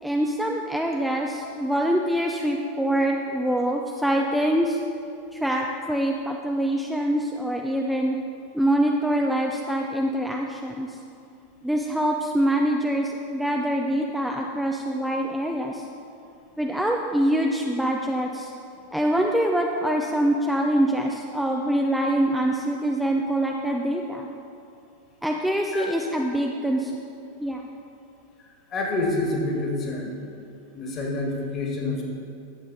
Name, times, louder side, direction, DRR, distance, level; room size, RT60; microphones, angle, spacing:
voice 1, 0.0-4.8 5.3-8.2 8.5-11.0 11.6-15.9 16.6-18.5 18.9-24.3 25.2-26.9 27.4-27.7, right 1 dB, ahead, 0 dB, 0.6 m, -24 dB
voice 2, 28.7-30.1 30.7-32.0, left 2 dB, 30° left, 0 dB, 1.9 m, -27 dB
11.5 x 7.8 x 4.1 m, 2.6 s
figure-of-eight pair, 85°, 0 cm